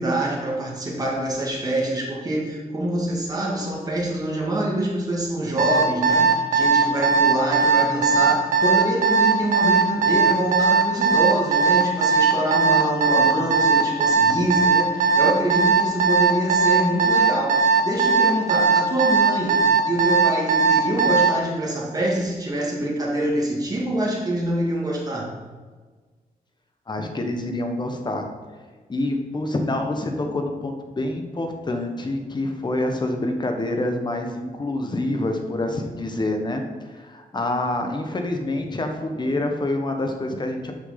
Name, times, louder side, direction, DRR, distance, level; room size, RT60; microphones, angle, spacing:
voice 1, 0.0-25.3, right 1 dB, 25° right, -4 dB, 2.2 m, -25 dB
Alarm, 5.6-21.4, right 5 dB, 65° right, 1.1 m, -18 dB
voice 2, 26.9-28.3 28.9-36.6 36.9-40.7, left 2 dB, 30° left, 4 dB, 1.2 m, -26 dB
6.4 x 6.1 x 5.8 m, 1.4 s
cardioid pair, 100°, 15 cm